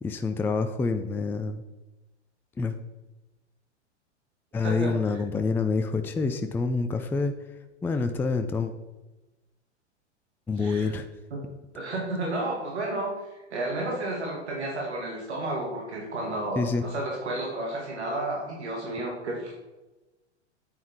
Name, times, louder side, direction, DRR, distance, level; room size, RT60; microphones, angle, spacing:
voice 1, 0.0-1.6 2.6-2.7 4.5-7.3 7.8-8.7 10.5-11.1 16.6-16.9, left 4 dB, 5° left, 8 dB, 0.5 m, -27 dB
voice 2, 4.6-4.9 10.6-10.9 11.3-11.4 11.7-13.1 13.5-19.5, right 2 dB, 70° right, -1 dB, 2.4 m, -32 dB
9.1 x 8.6 x 4.4 m, 1.1 s
figure-of-eight pair, 100°, 35 cm